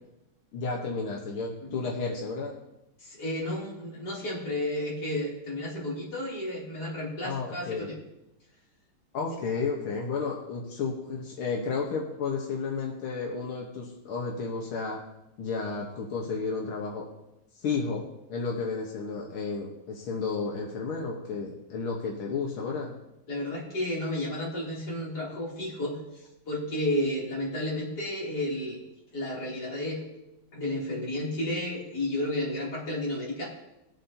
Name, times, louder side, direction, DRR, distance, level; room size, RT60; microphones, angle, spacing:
voice 1, 0.5-2.6 7.2-7.9 9.1-15.0 15.4-17.1 17.6-18.0 18.3-22.9, left 4 dB, 85° left, -1 dB, 2.1 m, -32 dB
voice 2, 3.0-8.0 23.3-28.8 29.1-30.0 30.5-33.5, left 1 dB, 50° left, -5 dB, 3.5 m, -32 dB
20.0 x 7.4 x 2.8 m, 0.90 s
omnidirectional pair, 2.3 m